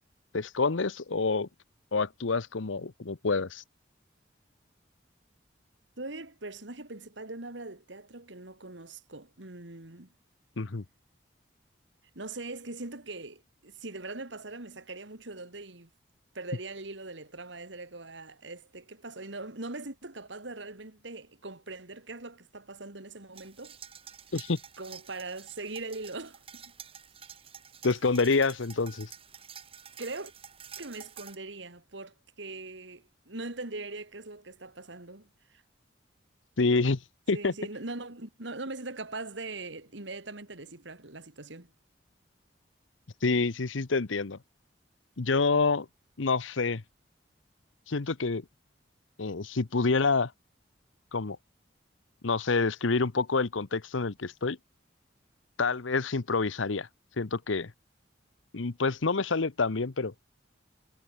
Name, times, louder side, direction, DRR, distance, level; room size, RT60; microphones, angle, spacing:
voice 1, 0.3-1.5 1.9-3.6 10.6-10.8 24.3-24.6 27.8-29.1 36.6-37.0 37.3-37.5 43.2-44.4 45.2-45.9 46.2-46.8 47.9-48.4 49.2-50.3 51.1-51.4 52.2-54.6 55.6-56.9 57.2-57.7 58.5-60.1, left 4 dB, 90° left, 0.9 m, -27 dB
voice 2, 6.0-10.1 12.1-15.9 16.3-23.8 24.8-26.6 30.0-30.3 30.8-35.6 37.3-41.7, right 2 dB, 75° right, 2.4 m, -41 dB
sound 1, 23.4-31.4, right 8 dB, 30° right, 3.9 m, -49 dB
head